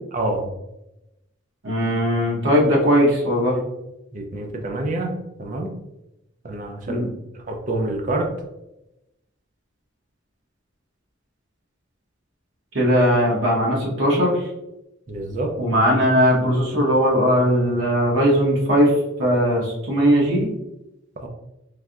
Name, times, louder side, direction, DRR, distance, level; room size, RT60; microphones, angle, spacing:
voice 1, 0.1-0.5 4.1-5.1 5.4-5.7 6.4-7.1 7.3-8.3 15.1-15.5 21.2-21.3, right 2 dB, 40° right, 2 dB, 0.5 m, -27 dB
voice 2, 1.6-3.6 6.9-7.1 12.7-14.5 15.6-18.9 19.2-20.5, equal, 70° right, -4 dB, 0.9 m, -19 dB
3.3 x 2.6 x 2.3 m, 0.91 s
head